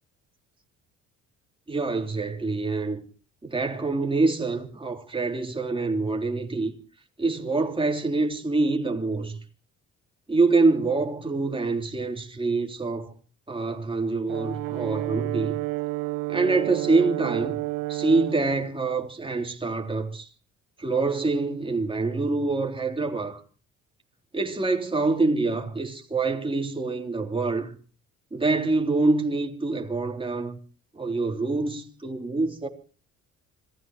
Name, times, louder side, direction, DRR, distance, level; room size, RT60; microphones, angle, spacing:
voice 1, 1.7-3.0 3.4-6.7 7.2-9.4 10.3-13.1 13.5-15.6 16.3-17.6 17.9-20.3 20.8-23.4 24.3-27.7 28.3-30.6 30.9-32.7, right 3 dB, 15° right, 3.6 m, -25 dB
Brass instrument, 14.3-18.5, right 21 dB, 80° right, 0.8 m, -30 dB
26.5 x 17.0 x 3.1 m
supercardioid pair, 65°, 32 cm